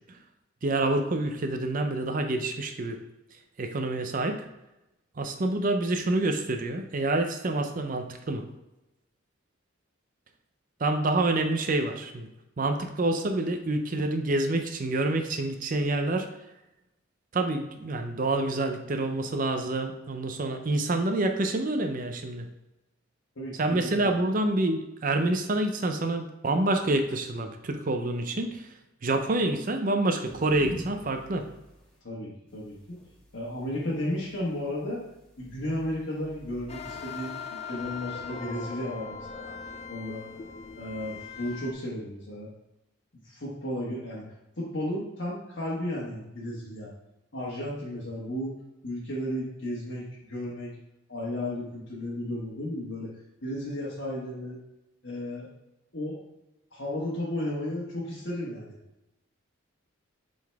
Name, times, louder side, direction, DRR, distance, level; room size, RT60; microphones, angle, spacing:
voice 1, 0.6-3.0 3.6-4.4 5.2-8.5 10.8-12.3 12.6-16.3 17.3-22.5 23.6-28.7 29.0-31.5, right 2 dB, 40° right, 6 dB, 0.5 m, -27 dB
voice 2, 23.4-24.1 32.0-33.0 33.3-35.0 35.4-39.6 39.9-40.2 40.8-42.5 43.2-44.2 44.6-46.9 47.3-48.5 48.8-50.8 51.1-53.1 53.4-54.6 55.0-55.5 55.9-56.2 56.7-58.8, left 1 dB, 60° left, -7 dB, 1.3 m, -34 dB
sound 1, 30.2-32.0 32.5-36.9, equal, 5° left, 1.2 m, -47 dB
sound 2, 36.7-41.7, left 5 dB, 30° left, 0.4 m, -40 dB
7.5 x 4.0 x 3.4 m, 0.95 s
head